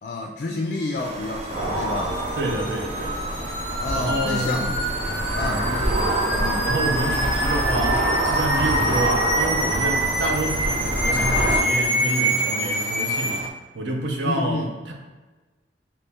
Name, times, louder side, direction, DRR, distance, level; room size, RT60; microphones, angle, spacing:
voice 1, 0.0-2.2 3.8-5.0 5.3-6.7 14.2-14.8, left 2 dB, 50° left, 2 dB, 0.3 m, -30 dB
sound 1, 1.0-13.5, right 2 dB, 35° right, 0.3 m, -37 dB
sound 2, 1.1-13.4, equal, 10° right, 0.7 m, -27 dB
sound 3, 1.5-11.6, right 1 dB, 85° right, 1.4 m, -26 dB
voice 2, 2.4-3.3 3.9-4.6 5.4-5.7 6.6-13.5 13.7-14.9, right 1 dB, 70° right, 2 dB, 0.6 m, -28 dB
4.1 x 3.0 x 3.5 m, 1.3 s
head